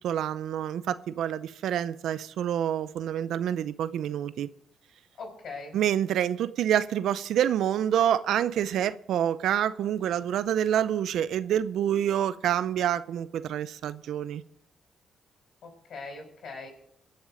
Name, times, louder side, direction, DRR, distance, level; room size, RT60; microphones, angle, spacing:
voice 1, 0.0-4.5 5.7-14.4, right 10 dB, 80° right, 0.6 m, -27 dB
voice 2, 5.2-5.8 15.6-16.7, left 3 dB, 65° left, 5.8 m, -41 dB
21.5 x 7.3 x 5.1 m
supercardioid pair, 65°, 0 cm